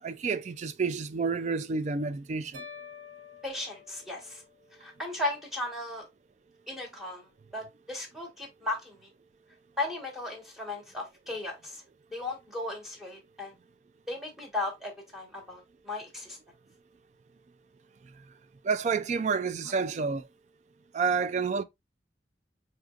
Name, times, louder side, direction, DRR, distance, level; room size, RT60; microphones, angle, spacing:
voice 1, 0.0-2.6 18.6-20.3 20.9-21.6, right 5 dB, 40° right, 0.3 m, -29 dB
sound 1, 2.5-4.8, left 5 dB, 90° right, 1.2 m, -48 dB
voice 2, 3.4-4.4 4.8-6.1 6.7-9.1 9.8-11.8 12.1-13.5 14.1-16.4, left 2 dB, ahead, 1.2 m, -36 dB
4.9 x 2.9 x 2.4 m
head